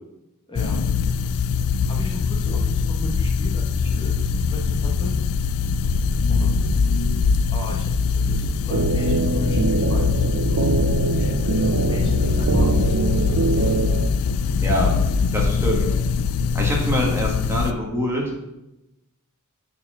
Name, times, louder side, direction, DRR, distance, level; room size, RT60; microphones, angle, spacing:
voice 1, 0.5-0.8 1.1-1.4 1.9-5.1 6.3-6.8 7.5-10.7 11.9-13.5, left 1 dB, 25° left, -2 dB, 1.3 m, -36 dB
sound 1, 0.6-17.7, left 5 dB, 85° left, 0.4 m, -22 dB
Rain, 5.9-9.5 10.0-10.1 10.6-17.2, equal, 55° left, 2.3 m, -32 dB
sound 2, 8.7-14.1, right 3 dB, 80° right, 0.6 m, -23 dB
voice 2, 14.6-14.9 15.3-15.9 16.5-18.4, equal, 10° right, -1 dB, 1.5 m, -24 dB
7.1 x 4.5 x 6.1 m, 0.93 s
head